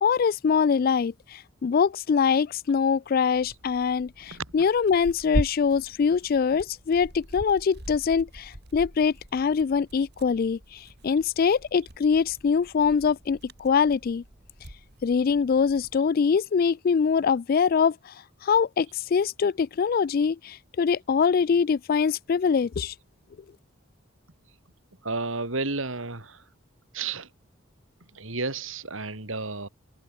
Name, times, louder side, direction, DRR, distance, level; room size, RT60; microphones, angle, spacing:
voice 1, 0.0-14.2 15.0-18.1 18.4-22.9, left 6 dB, 45° left, 0.3 m, -23 dB
Tearing, 3.3-16.0, right 1 dB, 55° right, 3.6 m, -39 dB
voice 2, 25.0-26.4 26.9-27.3 28.1-29.7, right 3 dB, 75° right, 3.8 m, -32 dB
head